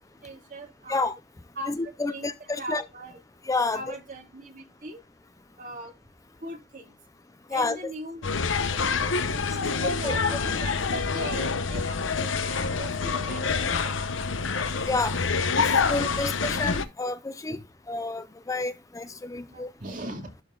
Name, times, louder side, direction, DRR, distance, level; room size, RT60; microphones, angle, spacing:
voice 1, 0.2-1.1 1.6-3.2 3.7-5.0 5.6-5.9 6.4-6.9 7.5-8.2 8.7-14.3 19.5-20.3, right 1 dB, 45° right, 2.4 m, -40 dB
voice 2, 1.7-2.8 3.5-3.9 7.5-7.9 10.0-10.1 14.8-15.2 15.6-17.6 17.9-19.7, left 3 dB, 15° left, 0.4 m, -29 dB
sound 1, 8.2-16.9, left 5 dB, 85° left, 0.8 m, -27 dB
11.5 x 4.2 x 3.8 m
head